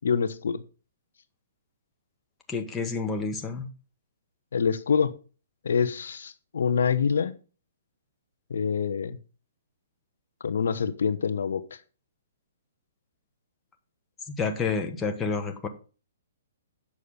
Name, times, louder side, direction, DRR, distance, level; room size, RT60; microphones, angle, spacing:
voice 1, 0.0-0.6 4.5-5.1 5.6-7.3 8.5-9.2 10.4-11.6, left 6 dB, 75° left, 11 dB, 1.0 m, -26 dB
voice 2, 2.5-3.7 14.3-15.7, left 4 dB, 15° left, 5 dB, 1.3 m, -29 dB
8.6 x 6.5 x 5.5 m, 0.35 s
hypercardioid pair, 150°, 0 cm